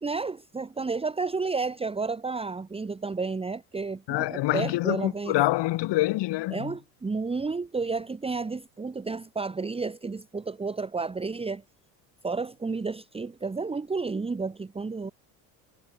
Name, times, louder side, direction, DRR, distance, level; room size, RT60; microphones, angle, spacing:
voice 1, 0.0-5.4 6.5-11.6 12.2-15.1, right 4 dB, 10° right, 1.3 m, -31 dB
voice 2, 4.1-6.7, left 18 dB, 60° left, 3.9 m, -26 dB
supercardioid pair, 115°, 47 cm